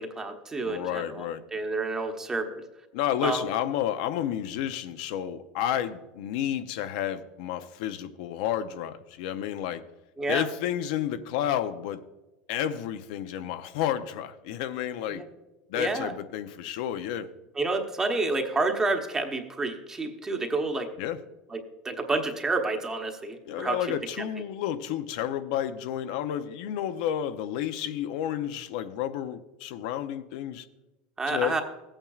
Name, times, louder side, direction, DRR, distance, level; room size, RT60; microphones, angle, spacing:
voice 1, 0.0-1.3 1.5-2.6 3.2-3.4 10.2-10.5 15.1-15.2 15.8-16.1 17.5-20.9 21.5-21.6 21.8-23.8 24.2-24.3 31.2-31.6, right 3 dB, 15° right, 4 dB, 1.0 m, -29 dB
voice 2, 0.6-1.4 2.9-9.8 10.3-12.0 12.5-15.2 15.7-17.3 21.0-21.2 23.5-30.6 31.3-31.6, left 10 dB, 65° left, 10 dB, 0.6 m, -31 dB
16.0 x 8.8 x 2.4 m, 1.1 s
supercardioid pair, 155°, 4 cm